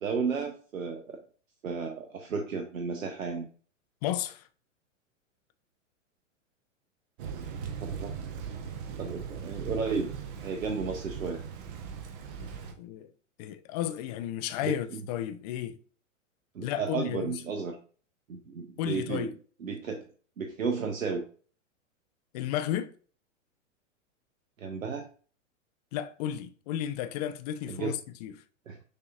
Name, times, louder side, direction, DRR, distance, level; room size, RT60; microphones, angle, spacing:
voice 1, 0.0-1.2 1.6-3.5 7.8-8.1 9.0-10.1 10.4-11.4 14.6-15.0 16.5-17.8 18.3-19.3 19.6-20.0 20.4-21.2 24.6-25.1 27.7-28.0 28.7-28.8, right 5 dB, 85° right, 0.7 m, -33 dB
voice 2, 4.0-4.5 12.4-13.1 13.4-15.8 16.6-17.4 18.8-19.3 22.3-22.9 25.9-28.3, left 11 dB, 35° left, 0.4 m, -33 dB
Thunder / Rain, 7.2-12.7, right 7 dB, 40° right, 0.8 m, -39 dB
6.5 x 2.8 x 2.4 m
hypercardioid pair, 105°, 39 cm